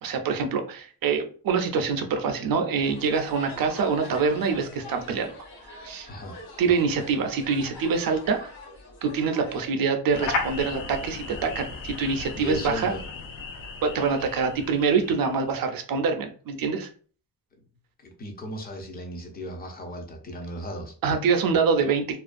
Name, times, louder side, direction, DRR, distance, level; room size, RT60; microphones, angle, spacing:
voice 1, 0.0-5.3 5.7-6.1 6.6-8.5 9.0-12.9 13.8-16.9 21.0-22.2, right 5 dB, 50° right, 6 dB, 0.5 m, -25 dB
sound 1, 2.7-9.7, left 2 dB, 55° left, 0.9 m, -44 dB
sound 2, 10.1-15.5, left 3 dB, 80° left, 0.7 m, -35 dB
voice 2, 12.3-13.0 18.0-20.9, left 1 dB, 20° left, 2 dB, 0.5 m, -36 dB
2.4 x 2.2 x 2.4 m, 0.42 s
cardioid pair, 140°, 45 cm